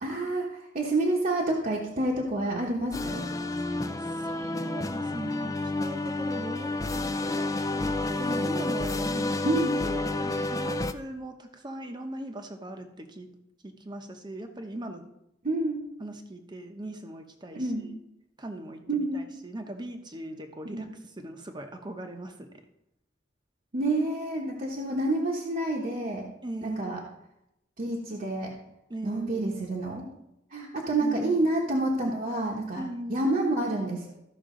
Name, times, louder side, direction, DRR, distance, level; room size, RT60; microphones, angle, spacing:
voice 1, 0.0-3.3 9.4-9.8 15.4-15.8 17.5-17.9 18.9-19.2 20.7-20.8 23.7-26.3 26.6-27.0 27.8-28.5 29.0-30.1 30.5-32.8 33.1-34.1, right 2 dB, 45° right, -3 dB, 1.1 m, -28 dB
sound 1, 2.9-10.9, left 2 dB, 15° left, 0.4 m, -30 dB
voice 2, 4.0-9.5 9.8-13.3 13.6-15.1 16.0-18.0 18.4-22.5 26.4-27.1 28.9-29.5 31.0-31.5 32.7-33.3, right 1 dB, 25° right, 5 dB, 0.9 m, -39 dB
14.0 x 5.9 x 3.8 m, 0.85 s
head